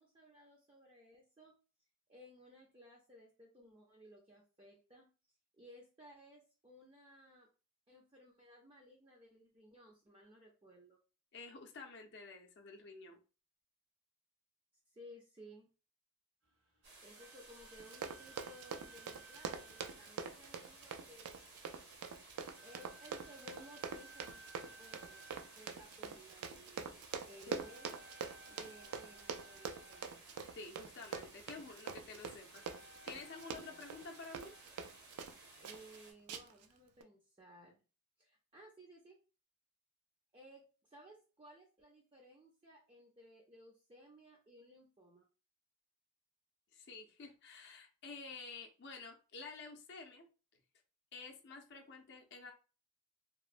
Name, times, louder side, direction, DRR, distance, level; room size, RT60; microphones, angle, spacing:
voice 1, 0.0-1.5 2.1-5.1 5.5-7.5 7.9-11.0 14.9-15.7 17.0-21.3 22.6-28.0 28.5-30.2 33.6-33.8 35.6-37.8 38.2-39.2 40.3-45.3, equal, 25° right, -2 dB, 0.4 m, -59 dB
voice 2, 11.3-13.2 27.5-27.6 30.5-32.6 33.0-34.5 46.7-50.3 51.1-52.5, left 4 dB, 50° left, 2 dB, 0.5 m, -50 dB
sound 1, 16.4-30.9 32.4-35.7, right 3 dB, 75° right, 1.4 m, -61 dB
sound 2, 16.8-36.1, right 2 dB, 50° right, 0.8 m, -58 dB
Run, 17.8-35.4 35.6-36.0 36.3-36.7 37.0-37.1, right 6 dB, 90° right, 0.4 m, -45 dB
3.0 x 2.0 x 2.5 m, 0.33 s
head